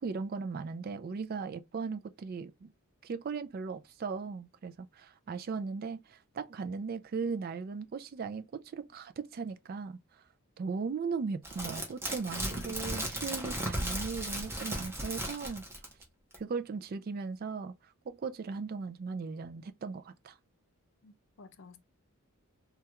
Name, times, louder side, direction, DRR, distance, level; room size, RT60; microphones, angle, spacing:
voice 1, 0.0-2.7 3.0-10.0 10.6-15.6 16.4-17.7 18.1-20.4, right 5 dB, 40° right, 0.3 m, -37 dB
sound 1, 11.4-16.0 16.3-16.4, right 1 dB, 10° right, 0.8 m, -36 dB
voice 2, 21.0-21.8, left 3 dB, 55° left, 0.5 m, -53 dB
3.3 x 2.3 x 2.9 m
head